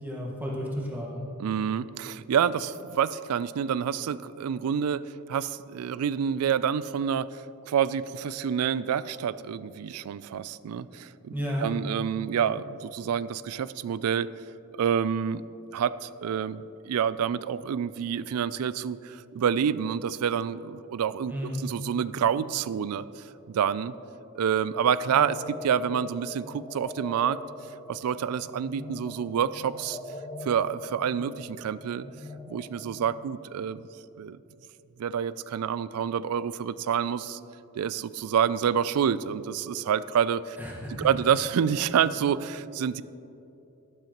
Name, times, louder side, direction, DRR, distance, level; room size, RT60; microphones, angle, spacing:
voice 1, 0.0-1.3 11.3-11.7 21.3-21.6 40.6-41.1, equal, 10° right, -4 dB, 1.5 m, -32 dB
voice 2, 1.4-11.3 11.6-14.5 14.8-15.4 15.7-21.3 21.6-23.9 24.3-27.4 27.9-30.0 30.4-32.1 32.5-33.9 34.2-34.4 35.0-37.4 37.8-40.6 41.0-43.0, right 8 dB, 80° right, 17 dB, 0.3 m, -28 dB
sound 1, 25.1-33.4, left 2 dB, 15° left, 0.5 m, -42 dB
12.0 x 12.0 x 3.0 m, 2.9 s
head